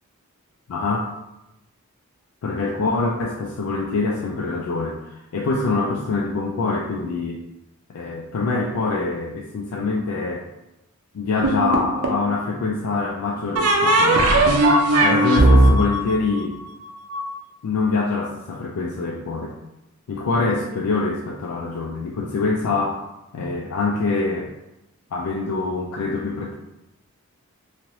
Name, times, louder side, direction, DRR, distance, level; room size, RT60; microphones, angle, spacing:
voice 1, 0.7-1.1 2.4-7.4 7.9-10.5 11.1-14.5 15.0-16.6 17.6-19.5 20.1-23.0 23.3-24.5 25.1-26.5, left 3 dB, 75° left, 0 dB, 0.3 m, -25 dB
sound 1, 11.4-12.3 13.6-17.2, right 1 dB, 80° right, 0.5 m, -17 dB
3.0 x 2.8 x 2.6 m, 0.91 s
head